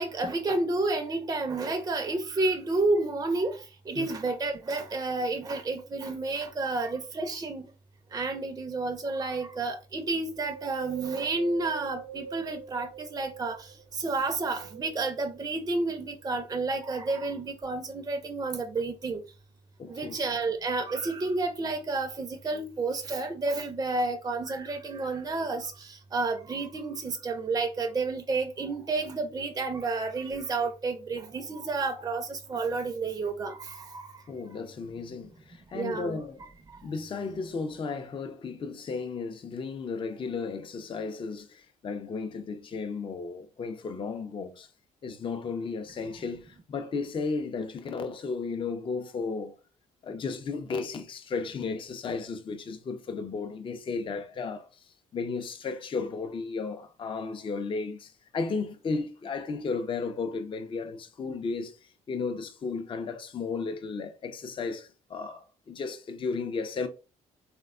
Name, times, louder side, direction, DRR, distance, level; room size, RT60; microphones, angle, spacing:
voice 1, 0.0-3.6 3.9-7.7 8.1-13.6 14.0-19.2 19.9-34.1 35.7-36.2, right 3 dB, 25° right, 0.5 m, -30 dB
Wind, 10.3-13.9 14.5-15.7 16.2-16.3, right 8 dB, 85° right, 0.7 m, -43 dB
voice 2, 19.8-20.1 34.3-36.4 36.8-44.7 45.0-49.6 50.0-66.9, left 4 dB, 35° left, 0.5 m, -34 dB
3.4 x 2.1 x 2.3 m
supercardioid pair, 65°, 16 cm